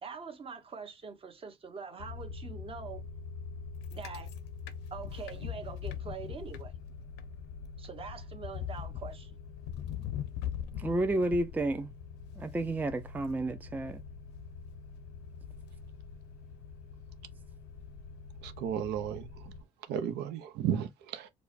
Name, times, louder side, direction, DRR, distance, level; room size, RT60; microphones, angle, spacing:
voice 1, 0.0-3.0 3.9-4.3 4.9-6.7 7.8-9.3, right 5 dB, 35° right, 1.0 m, -44 dB
sound 1, 2.0-19.6, left 7 dB, 85° left, 0.6 m, -42 dB
voice 2, 10.8-11.9 12.4-14.0, right 2 dB, 10° right, 0.4 m, -31 dB
voice 3, 18.4-19.5 19.9-21.3, right 9 dB, 85° right, 0.6 m, -34 dB
4.7 x 2.2 x 2.5 m
cardioid pair, 110°, 17 cm